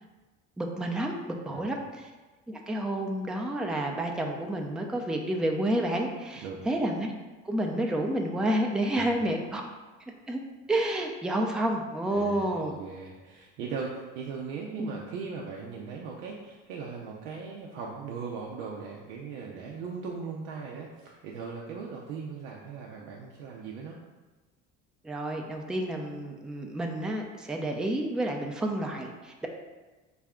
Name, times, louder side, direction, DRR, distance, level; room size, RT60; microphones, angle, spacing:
voice 1, 0.6-2.1 2.5-7.1 7.4-9.6 10.3-10.4 10.7-12.8 14.8-14.9 25.0-29.5, right 1 dB, ahead, 1 dB, 0.4 m, -30 dB
voice 2, 12.1-24.0, right 5 dB, 85° right, -2 dB, 0.6 m, -39 dB
4.0 x 2.3 x 3.5 m, 1.2 s
supercardioid pair, 75°, 35 cm